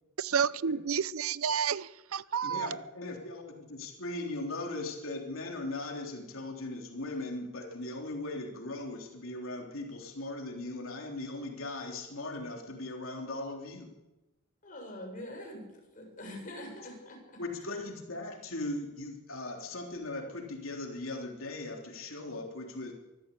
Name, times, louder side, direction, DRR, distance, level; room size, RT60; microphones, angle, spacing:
voice 1, 0.2-2.7, right 7 dB, 85° right, 0.6 m, -30 dB
voice 2, 2.4-13.9 17.4-22.9, left 2 dB, 70° left, 3.5 m, -39 dB
voice 3, 14.6-15.7 15.9-17.4, left 1 dB, 40° left, 7.6 m, -44 dB
24.0 x 14.0 x 8.5 m
head